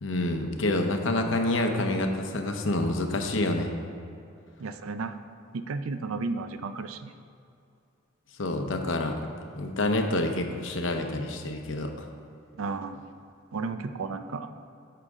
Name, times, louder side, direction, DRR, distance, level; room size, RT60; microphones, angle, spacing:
voice 1, 0.0-3.7 8.4-9.3 9.6-12.1, left 2 dB, 65° left, 4 dB, 0.8 m, -28 dB
voice 2, 4.6-5.2 5.5-7.1 12.5-13.0 13.5-14.5, right 4 dB, 85° right, 10 dB, 0.5 m, -33 dB
11.5 x 5.8 x 3.7 m, 2.5 s
head